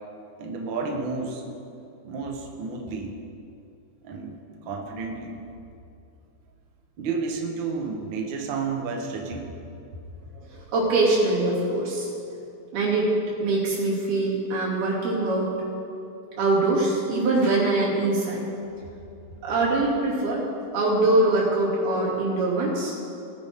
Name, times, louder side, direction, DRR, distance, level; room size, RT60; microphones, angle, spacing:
voice 1, 0.4-1.4 2.0-3.2 4.0-4.4 4.6-5.4 7.0-9.7, right 4 dB, 65° right, 1 dB, 1.1 m, -31 dB
voice 2, 10.4-12.1 12.7-13.1 13.4-15.5 16.4-18.4 19.4-20.5 20.7-22.9, right 2 dB, 85° right, -6 dB, 4.8 m, -23 dB
20.0 x 9.9 x 3.7 m, 2.6 s
omnidirectional pair, 4.3 m